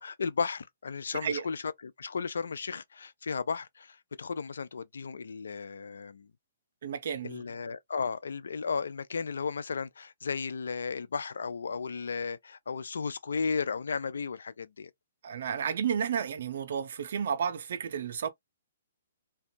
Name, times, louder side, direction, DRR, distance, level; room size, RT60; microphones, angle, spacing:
voice 1, 0.0-6.3 7.2-14.9, left 5 dB, 75° left, 0.3 m, -34 dB
voice 2, 6.8-7.4 15.2-18.3, right 7 dB, 60° right, 0.4 m, -32 dB
2.5 x 2.2 x 2.5 m
hypercardioid pair, 130°, 0 cm